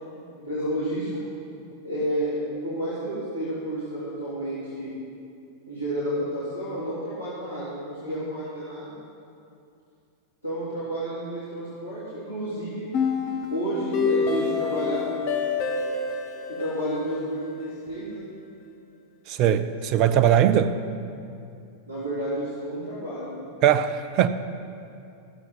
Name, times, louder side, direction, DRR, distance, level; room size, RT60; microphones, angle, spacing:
voice 1, 0.1-1.2 1.8-4.9 5.7-8.9 10.4-12.9 13.5-15.0 16.5-18.3 21.9-23.3, equal, 85° left, 3.1 m, -30 dB
sound 1, 12.9-18.0, left 5 dB, 45° left, 1.3 m, -28 dB
voice 2, 19.3-20.8 23.6-24.3, right 10 dB, 40° right, 0.5 m, -20 dB
14.5 x 7.6 x 5.4 m
figure-of-eight pair, 90°, 0 cm